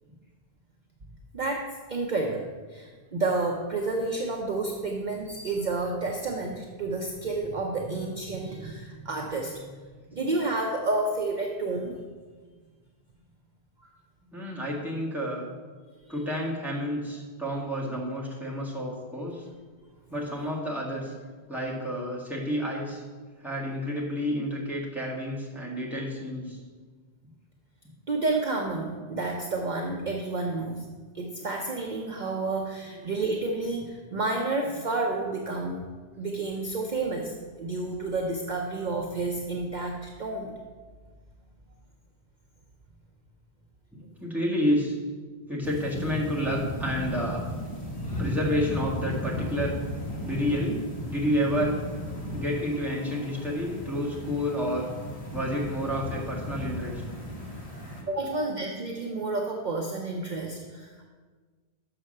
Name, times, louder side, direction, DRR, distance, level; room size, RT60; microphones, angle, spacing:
voice 1, 1.3-9.8 10.1-11.9 16.0-16.1 28.1-30.9 31.1-35.8 36.2-40.6 58.1-61.1, right 3 dB, 50° right, 1 dB, 0.8 m, -30 dB
voice 2, 14.2-15.5 16.1-19.4 20.1-21.1 21.5-23.0 23.4-26.6 31.2-31.3 32.9-33.1 34.6-34.8 44.2-44.9 45.5-47.4 48.2-49.8 50.2-50.8 51.1-51.8 52.3-54.9 55.3-57.0, equal, ahead, -5 dB, 1.6 m, -30 dB
sound 1, 45.6-58.0, left 1 dB, 35° left, 1.7 m, -35 dB
6.9 x 5.9 x 6.4 m, 1.4 s
omnidirectional pair, 1.1 m